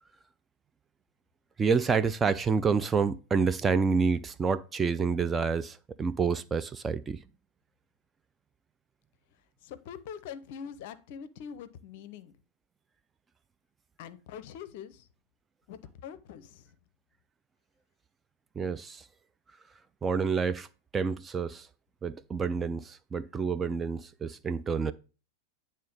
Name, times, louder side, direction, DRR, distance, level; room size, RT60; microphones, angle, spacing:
voice 1, 1.6-7.2 18.6-19.0 20.0-20.7 20.9-21.7 22.0-24.9, right 5 dB, 15° right, 0.3 m, -28 dB
voice 2, 9.6-12.3 14.0-15.1 15.7-16.7, left 8 dB, 50° left, 0.5 m, -44 dB
8.7 x 3.2 x 5.2 m
figure-of-eight pair, 90°, 0 cm